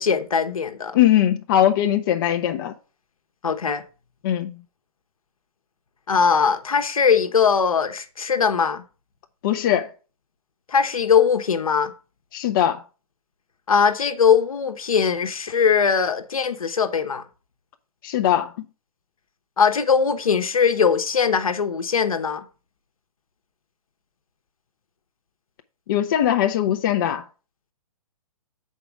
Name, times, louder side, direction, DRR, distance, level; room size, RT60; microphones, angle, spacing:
voice 1, 0.0-1.0 3.4-3.8 6.1-8.8 10.7-11.9 13.7-17.2 19.6-22.5, left 6 dB, 65° left, 1.1 m, -20 dB
voice 2, 0.9-2.7 4.2-4.6 9.4-9.9 12.3-12.8 18.0-18.5 25.9-27.2, left 11 dB, 35° left, 0.6 m, -20 dB
6.9 x 4.6 x 6.0 m
figure-of-eight pair, 125°, 19 cm